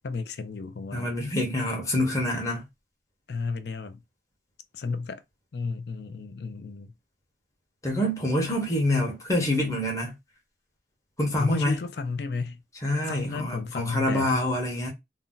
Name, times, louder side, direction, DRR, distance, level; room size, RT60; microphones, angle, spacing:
voice 1, 0.0-1.1 3.3-4.0 4.7-5.2 5.5-6.9 11.4-12.6 13.1-14.4, left 4 dB, 60° left, 0.4 m, -32 dB
voice 2, 0.9-2.6 7.8-10.1 11.2-11.7 12.8-14.9, left 1 dB, 20° left, 0.9 m, -26 dB
2.6 x 2.1 x 3.7 m
head